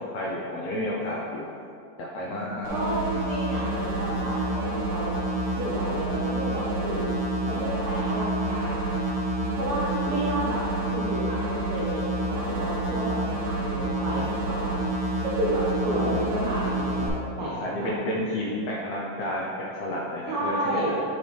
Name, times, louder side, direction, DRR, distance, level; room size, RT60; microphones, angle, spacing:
voice 1, 0.0-1.5 2.0-2.8 17.4-19.5 19.8-20.9, left 1 dB, 75° left, -4 dB, 1.7 m, -31 dB
sound 1, 2.6-17.1, right 1 dB, 50° right, 1.7 m, -28 dB
voice 2, 2.7-5.2 5.6-7.1 7.5-9.2 9.6-10.6 10.9-14.8 15.2-17.1 17.4-17.9 20.3-20.9, right 1 dB, 85° right, -7 dB, 1.2 m, -30 dB
7.4 x 4.3 x 3.3 m, 2.4 s
omnidirectional pair, 3.7 m